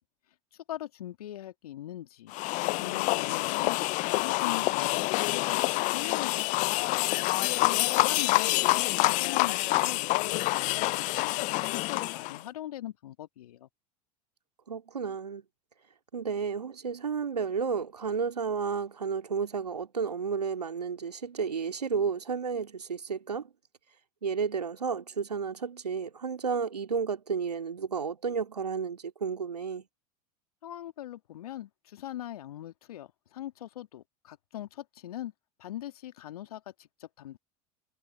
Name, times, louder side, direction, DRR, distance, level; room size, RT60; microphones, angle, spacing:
voice 1, 0.7-2.3 2.8-3.8 4.1-7.0 7.4-13.7 30.6-35.3 35.6-37.4, left 13 dB, 70° left, 2.3 m, -41 dB
sound 1, 2.3-12.4, left 23 dB, 40° left, 0.4 m, -27 dB
voice 2, 14.7-15.4 16.1-23.5 24.2-29.8, right 5 dB, 85° right, 2.6 m, -32 dB
figure-of-eight pair, 80°, 20 cm